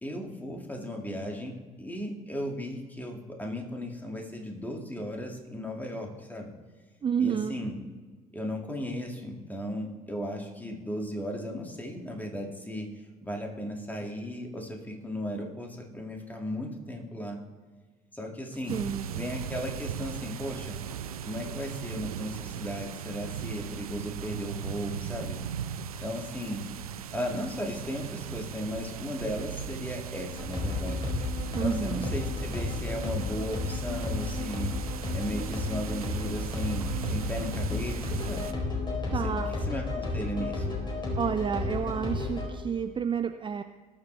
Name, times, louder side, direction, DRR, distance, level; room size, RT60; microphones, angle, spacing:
voice 1, 0.0-1.5 1.8-6.5 7.2-7.8 8.3-12.9 13.2-17.4 18.1-18.8 19.1-20.8 21.2-25.4 26.0-26.6 27.1-31.1 31.6-34.7 35.1-38.5 39.1-39.4 39.7-40.7, equal, 10° left, 1 dB, 2.6 m, -36 dB
voice 2, 7.0-7.7 18.5-19.1 31.5-32.1 39.1-39.6 41.2-43.6, right 7 dB, 25° right, 10 dB, 0.5 m, -30 dB
sound 1, 18.7-38.5, right 9 dB, 80° right, 0.5 m, -38 dB
sound 2, 30.3-42.5, left 3 dB, 25° left, 4.2 m, -32 dB
19.5 x 7.5 x 3.5 m, 1.4 s
figure-of-eight pair, 55°, 18 cm